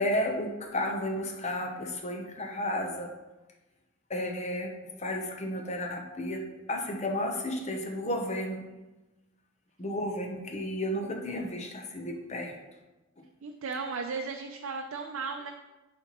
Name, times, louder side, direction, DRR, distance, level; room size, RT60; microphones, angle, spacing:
voice 1, 0.0-3.1 4.1-8.7 9.8-12.5, left 1 dB, 35° left, 2 dB, 0.7 m, -32 dB
voice 2, 13.4-15.5, right 4 dB, 80° right, 3 dB, 0.5 m, -35 dB
11.0 x 4.3 x 3.0 m, 1.1 s
head